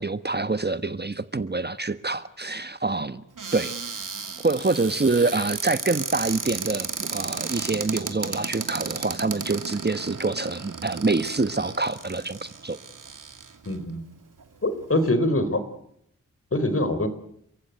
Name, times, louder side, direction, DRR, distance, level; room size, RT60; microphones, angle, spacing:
voice 1, 0.0-3.2 3.5-3.7 4.4-12.8, right 3 dB, 30° right, 12 dB, 1.2 m, -26 dB
Cupboard open or close, 3.4-13.7 14.4-14.5 14.7-15.1, right 5 dB, 80° right, 2.8 m, -34 dB
voice 2, 13.7-14.0 14.6-15.6 16.5-17.1, left 1 dB, 45° left, 12 dB, 4.3 m, -23 dB
30.0 x 15.0 x 9.3 m, 0.72 s
cardioid pair, 40°, 31 cm